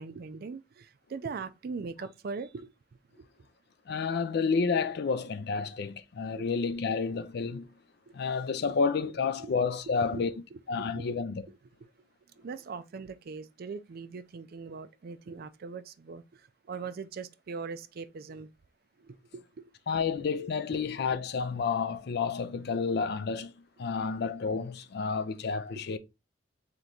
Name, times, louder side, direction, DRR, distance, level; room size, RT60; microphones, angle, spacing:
voice 1, 0.0-2.7 3.2-3.3 6.4-6.5 8.1-8.2 8.6-8.8 9.4-9.5 9.9-11.6 12.4-16.4 16.7-18.5 19.0-19.4, right 4 dB, 55° right, 0.4 m, -41 dB
voice 2, 3.9-7.7 8.1-10.3 10.7-11.4 19.9-23.5 23.8-26.0, left 5 dB, 60° left, 0.4 m, -30 dB
3.3 x 3.1 x 3.8 m
head